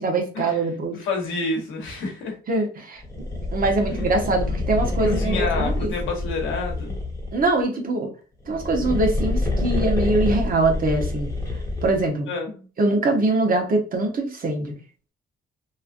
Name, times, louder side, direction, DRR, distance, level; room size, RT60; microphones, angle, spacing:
voice 1, 0.0-1.0 2.5-3.0 3.5-5.9 7.3-8.1 8.5-11.3 11.8-12.3 12.8-14.8, right 2 dB, 45° right, 2 dB, 0.9 m, -23 dB
voice 2, 0.9-2.4 3.9-4.1 5.0-7.0 12.3-12.7, left 3 dB, 85° left, 1 dB, 1.1 m, -29 dB
sound 1, 3.0-7.5 8.4-12.1, left 2 dB, 15° left, 1.1 m, -27 dB
3.1 x 2.4 x 2.5 m, 0.37 s
cardioid pair, 90°, 20 cm